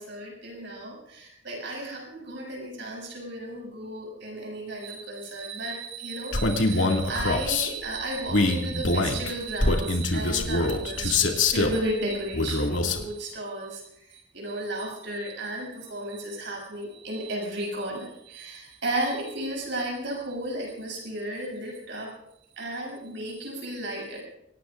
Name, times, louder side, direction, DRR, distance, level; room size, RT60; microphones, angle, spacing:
voice 1, 0.0-13.8 14.1-22.1 22.6-24.2, right 1 dB, 65° right, -2 dB, 7.8 m, -34 dB
Male speech man speaking, 6.3-7.7 8.3-11.8 12.3-13.0, left 2 dB, 85° left, 2.2 m, -24 dB
24.5 x 18.5 x 2.5 m, 0.78 s
head